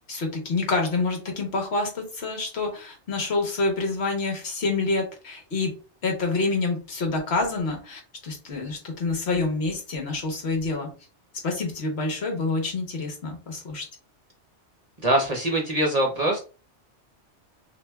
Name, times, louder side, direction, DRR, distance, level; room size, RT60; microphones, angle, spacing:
voice 1, 0.1-5.7 6.0-10.9 11.4-13.8, left 3 dB, 65° left, 2 dB, 1.3 m, -27 dB
voice 2, 15.0-16.4, right 1 dB, 35° right, 0 dB, 0.8 m, -23 dB
5.9 x 2.3 x 2.3 m, 0.34 s
omnidirectional pair, 1.2 m